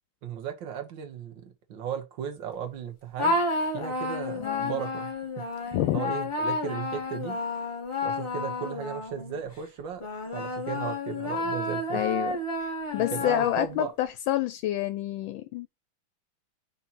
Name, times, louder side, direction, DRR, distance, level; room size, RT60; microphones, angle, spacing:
voice 1, 0.2-3.4 3.7-5.5 5.9-7.4 8.0-10.1 10.3-12.0 13.1-13.9, right 8 dB, 65° right, 1.9 m, -36 dB
sound 1, 3.2-9.4 10.0-13.9, left 2 dB, 20° left, 0.9 m, -31 dB
voice 2, 4.4-4.7 5.7-6.0 11.9-12.3 12.6-15.7, left 14 dB, 75° left, 1.3 m, -28 dB
5.5 x 4.3 x 4.1 m
omnidirectional pair, 2.3 m